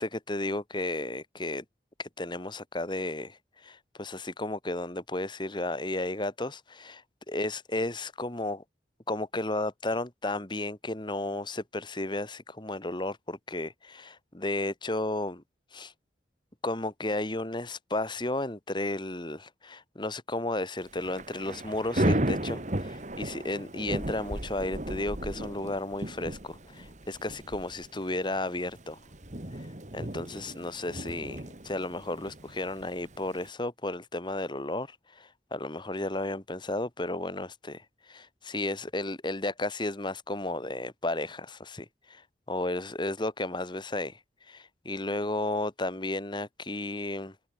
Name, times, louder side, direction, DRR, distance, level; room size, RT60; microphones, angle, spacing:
voice 1, 0.0-1.6 2.0-7.0 7.3-8.6 9.1-15.4 15.7-15.9 16.6-29.0 29.9-37.8 38.1-42.2 42.5-44.2 44.5-47.3, left 2 dB, 25° left, 2.1 m, -33 dB
Thunder / Rain, 20.8-33.5, right 1 dB, 45° right, 2.4 m, -35 dB
head